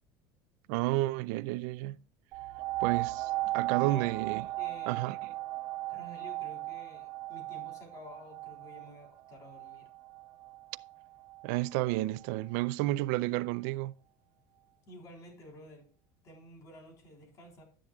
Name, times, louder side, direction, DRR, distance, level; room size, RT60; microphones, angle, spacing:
voice 1, 0.7-2.0 2.8-4.5 4.9-5.2 11.4-13.9, right 18 dB, 75° right, 0.4 m, -31 dB
sound 1, 2.3-11.6 12.2-12.3, right 17 dB, 55° right, 2.2 m, -37 dB
voice 2, 3.7-4.2 4.6-5.1 5.9-9.9 14.9-15.9 16.2-17.6, left 1 dB, 40° left, 3.8 m, -51 dB
12.0 x 10.0 x 2.3 m
cardioid pair, 160°, 9 cm